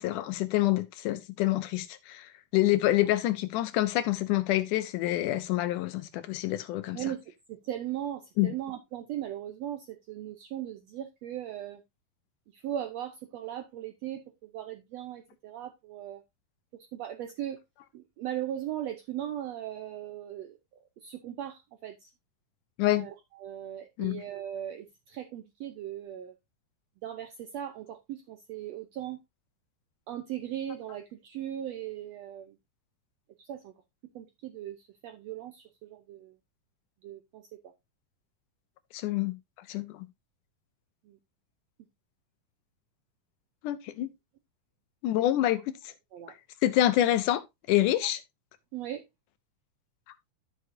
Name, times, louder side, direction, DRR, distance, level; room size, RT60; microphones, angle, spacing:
voice 1, 0.0-7.0 8.4-8.5 22.8-23.1 24.0-24.2 38.9-39.3 39.7-40.1 43.6-44.1 45.0-45.9 46.6-48.2, left 14 dB, 75° left, 2.0 m, -27 dB
voice 2, 7.5-11.8 12.5-16.2 16.9-17.6 17.9-20.6 21.0-22.1 22.9-26.3 27.0-29.2 30.1-32.6 33.4-33.7 34.1-36.4 37.0-37.7 41.0-41.2 46.1-46.3 48.7-49.0, right 11 dB, 80° right, 1.5 m, -38 dB
12.5 x 6.6 x 2.7 m
omnidirectional pair, 4.0 m